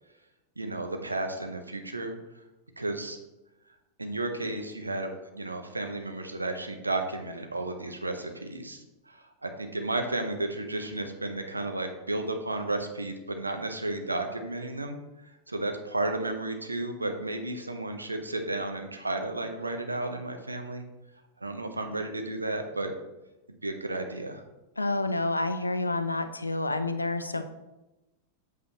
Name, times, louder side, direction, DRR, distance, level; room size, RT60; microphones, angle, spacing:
voice 1, 0.6-2.1 2.8-3.2 4.0-15.0 15.5-20.8 21.4-22.9 23.6-24.4, right 2 dB, 80° right, 5 dB, 0.9 m, -33 dB
voice 2, 24.8-27.4, left 2 dB, 80° left, 10 dB, 0.6 m, -29 dB
8.2 x 7.3 x 3.0 m, 1.0 s
figure-of-eight pair, 90°, 0 cm